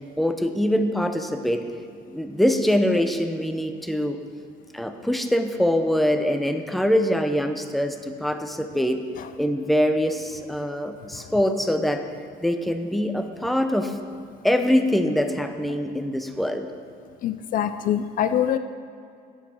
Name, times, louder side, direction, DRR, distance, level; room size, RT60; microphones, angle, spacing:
voice 1, 0.2-1.6 2.1-4.2 4.7-9.0 9.4-12.0 12.4-14.0 14.4-16.7, equal, ahead, 7 dB, 0.6 m, -23 dB
voice 2, 17.2-18.6, left 10 dB, 55° left, 11 dB, 0.4 m, -24 dB
8.6 x 7.2 x 5.4 m, 2.4 s
cardioid pair, 110°, 17 cm